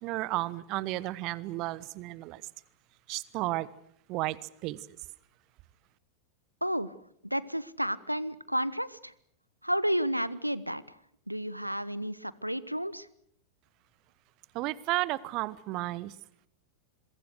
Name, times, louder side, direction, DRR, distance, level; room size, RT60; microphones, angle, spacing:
voice 1, 0.0-2.4 3.1-3.7 4.1-5.0 14.5-16.2, right 18 dB, 40° right, 21 dB, 1.1 m, -33 dB
voice 2, 6.6-6.9 7.2-9.1 9.6-10.8 11.3-13.1, equal, 90° right, 19 dB, 1.0 m, -31 dB
27.0 x 23.0 x 6.6 m, 0.68 s
figure-of-eight pair, 90°, 0 cm